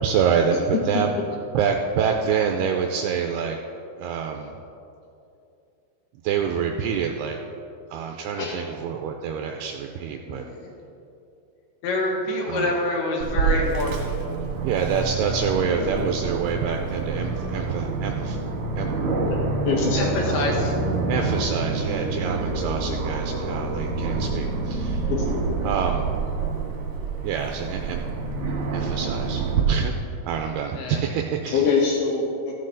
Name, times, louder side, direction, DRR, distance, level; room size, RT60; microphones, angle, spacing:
voice 1, 0.0-1.1 1.5-3.6 4.0-4.5 6.2-7.4 7.9-10.4 12.5-12.7 14.6-18.4 18.8-18.9 21.1-25.1 25.6-26.1 27.2-28.0 28.7-29.9 30.3-31.6, right 7 dB, 85° right, 3 dB, 2.3 m, -26 dB
voice 2, 10.3-10.7 11.8-14.1 20.3-20.7 30.7-31.0, left 2 dB, 70° left, 0 dB, 3.3 m, -26 dB
Aircraft, 13.2-29.6, right 4 dB, 60° right, 2.0 m, -27 dB
voice 3, 19.6-20.4 22.8-23.1 24.5-24.6 25.1-25.6 31.5-32.5, left 5 dB, 85° left, -1 dB, 1.8 m, -25 dB
15.5 x 7.6 x 3.9 m, 2.7 s
omnidirectional pair, 5.1 m